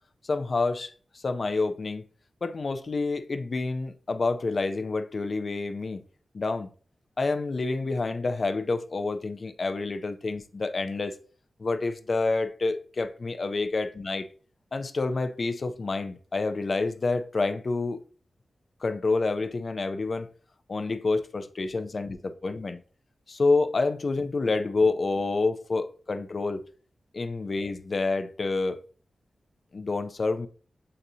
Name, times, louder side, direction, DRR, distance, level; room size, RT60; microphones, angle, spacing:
voice 1, 0.2-0.9 1.2-2.0 2.4-6.0 6.3-6.7 7.2-11.1 11.6-14.3 14.7-18.0 18.8-20.3 20.7-22.8 23.3-26.6 27.1-28.8 29.7-30.5, left 3 dB, 50° left, 0.4 m, -28 dB
7.4 x 2.7 x 2.7 m
wide cardioid pair, 105°, 0 cm